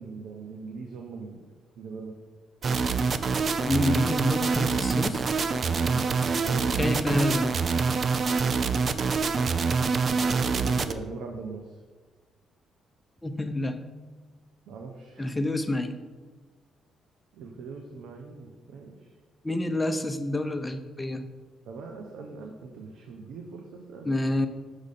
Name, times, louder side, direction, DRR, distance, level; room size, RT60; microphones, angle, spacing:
voice 1, 0.0-2.1 4.4-4.6 5.6-7.1 10.3-11.8 14.7-15.3 15.6-15.7 17.3-19.1 21.7-24.1, right 4 dB, 85° right, 2 dB, 0.7 m, -41 dB
sound 1, 2.6-10.9, right 5 dB, 45° right, 0.4 m, -25 dB
voice 2, 3.7-5.3 6.8-7.5 13.2-13.8 15.2-15.9 19.4-21.2 24.0-24.5, left 1 dB, 15° left, 8 dB, 0.5 m, -28 dB
6.2 x 5.1 x 4.2 m, 1.3 s
cardioid pair, 90°, 0 cm